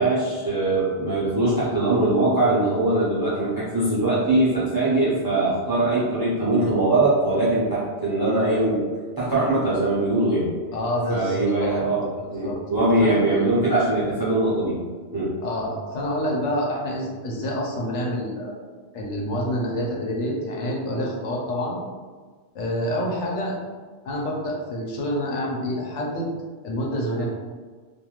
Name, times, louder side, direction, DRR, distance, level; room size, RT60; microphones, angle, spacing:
voice 1, 0.0-8.8 9.2-10.5 11.1-14.8 15.1-15.4, right 2 dB, 25° right, -10 dB, 0.5 m, -22 dB
voice 2, 10.7-11.9 12.2-12.6 13.0-13.4 15.4-18.5 18.9-21.8 22.5-23.6 24.0-26.3 26.6-27.3, equal, 80° left, -2 dB, 1.0 m, -27 dB
3.0 x 2.5 x 2.4 m, 1.5 s
omnidirectional pair, 1.2 m